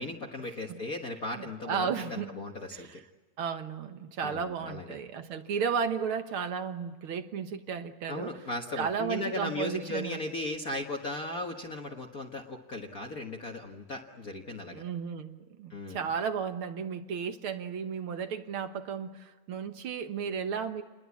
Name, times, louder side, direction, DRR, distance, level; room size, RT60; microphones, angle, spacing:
voice 1, 0.0-3.0 4.2-5.0 8.1-14.8 15.7-16.1, left 2 dB, 50° left, 2 dB, 1.0 m, -37 dB
voice 2, 1.4-2.3 2.7-3.0 3.4-8.3 8.8-10.2 14.7-20.8, right 6 dB, 55° right, 8 dB, 1.6 m, -34 dB
29.5 x 21.5 x 8.4 m, 1.3 s
omnidirectional pair, 3.8 m